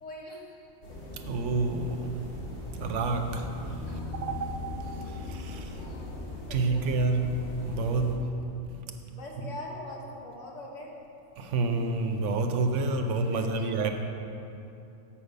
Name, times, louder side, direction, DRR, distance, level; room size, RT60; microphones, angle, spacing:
voice 1, 0.0-1.0 3.8-4.2 5.7-6.2 6.5-6.9 9.1-10.9 13.3-13.9, left 1 dB, 65° left, -2 dB, 1.5 m, -43 dB
sound 1, 0.8-8.2, left 2 dB, 45° left, 1.4 m, -39 dB
voice 2, 1.3-2.1 2.8-3.8 4.2-4.6 4.8-5.9 6.5-7.3 7.7-8.2 11.4-13.9, right 3 dB, 70° right, 5 dB, 0.9 m, -29 dB
7.1 x 6.5 x 5.2 m, 2.8 s
omnidirectional pair, 1.4 m